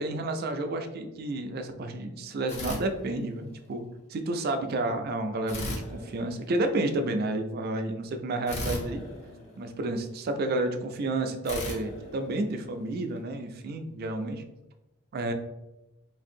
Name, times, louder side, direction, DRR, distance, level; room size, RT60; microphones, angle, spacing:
voice 1, 0.0-9.0 9.6-14.4 15.1-15.3, right 2 dB, 45° right, 6 dB, 0.3 m, -31 dB
sound 1, 2.5-3.6 5.5-6.9 8.5-10.2 11.4-13.0, left 1 dB, 35° left, 0.6 m, -38 dB
3.3 x 2.6 x 2.6 m, 0.97 s
head